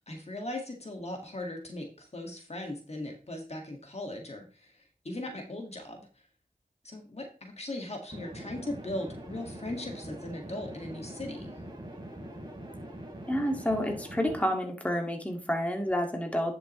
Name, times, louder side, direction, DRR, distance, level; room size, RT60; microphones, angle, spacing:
voice 1, 0.1-4.7 5.1-6.1 6.8-11.5, left 1 dB, 50° left, 3 dB, 1.9 m, -38 dB
sound 1, 8.1-14.5, right 1 dB, 30° right, 3.4 m, -43 dB
voice 2, 13.3-16.5, equal, 10° left, 2 dB, 2.0 m, -29 dB
10.5 x 6.5 x 3.1 m, 0.37 s
wide cardioid pair, 50°, 14 cm